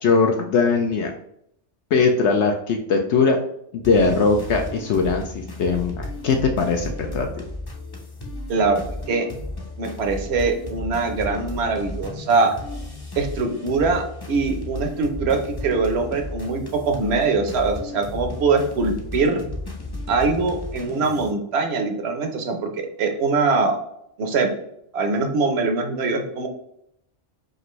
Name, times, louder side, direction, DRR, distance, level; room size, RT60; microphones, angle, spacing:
voice 1, 0.0-1.1 1.9-3.4 3.7-7.3, left 4 dB, 70° left, 3 dB, 0.8 m, -20 dB
sound 1, 3.8-21.3, left 2 dB, 25° left, 0.6 m, -34 dB
voice 2, 8.5-8.8 9.1-9.3 9.8-12.5 13.2-19.4 20.1-22.7 23.0-23.8 24.2-24.5 24.9-26.5, right 4 dB, 65° right, 5 dB, 1.0 m, -22 dB
5.1 x 2.6 x 3.1 m, 0.74 s
omnidirectional pair, 1.3 m